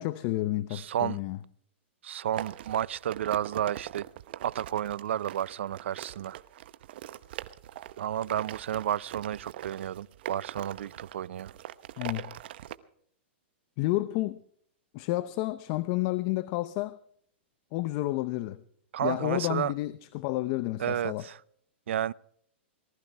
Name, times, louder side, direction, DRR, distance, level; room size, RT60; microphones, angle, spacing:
voice 1, 0.0-1.4 12.0-12.3 13.8-14.4 14.9-17.0 17.7-18.6 19.0-21.3, left 17 dB, 40° left, 0.6 m, -30 dB
voice 2, 0.7-1.2 2.0-4.1 4.4-6.4 8.0-11.5 18.9-19.7 20.8-21.4 21.9-22.1, right 11 dB, 80° right, 0.5 m, -31 dB
sound 1, 2.4-12.8, right 13 dB, 60° right, 0.9 m, -42 dB
19.0 x 14.0 x 4.5 m
hypercardioid pair, 150°, 6 cm